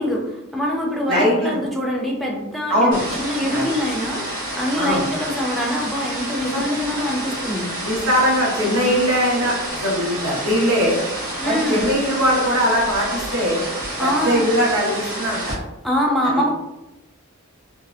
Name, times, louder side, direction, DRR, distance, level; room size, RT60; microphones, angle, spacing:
voice 1, 0.0-4.2 4.6-7.7 11.4-11.9 14.0-14.5 15.8-16.5, equal, ahead, -2 dB, 0.4 m, -24 dB
voice 2, 1.1-1.5 2.7-3.0 3.5-3.6 4.8-5.0 6.5-6.6 7.8-11.0 11.4-13.6 14.0-15.6, equal, 80° right, -3 dB, 0.9 m, -20 dB
sound 1, 2.9-15.5, right 1 dB, 40° right, 0.9 m, -29 dB
2.7 x 2.1 x 2.4 m, 0.94 s
head